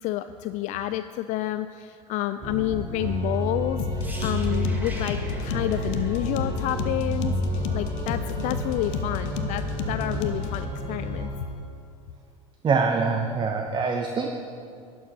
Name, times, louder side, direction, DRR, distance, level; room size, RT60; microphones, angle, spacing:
voice 1, 0.0-3.8 4.2-11.3, left 14 dB, 45° left, 11 dB, 0.4 m, -29 dB
Organ, 2.4-11.6, right 1 dB, 45° right, 2.9 m, -31 dB
sound 1, 3.8-10.7, left 8 dB, 60° left, 0.9 m, -32 dB
sound 2, 4.0-7.9 8.1-8.3, right 1 dB, 10° right, 1.7 m, -44 dB
voice 2, 12.6-14.3, right 4 dB, 25° right, 4 dB, 0.9 m, -24 dB
11.5 x 9.3 x 5.4 m, 2.4 s
figure-of-eight pair, 75°, 18 cm